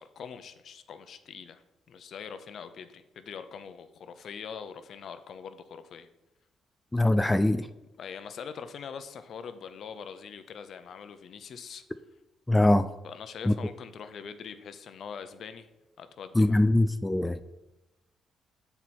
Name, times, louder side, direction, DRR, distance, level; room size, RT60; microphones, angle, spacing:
voice 1, 0.0-6.1 8.0-11.8 13.0-15.7 16.0-16.6, left 6 dB, 60° left, 10 dB, 0.6 m, -43 dB
voice 2, 6.9-7.7 12.5-12.9 13.5-13.6 16.4-17.4, left 1 dB, 10° left, 10 dB, 0.3 m, -22 dB
7.3 x 4.5 x 4.2 m, 0.97 s
cardioid pair, 90°, 0 cm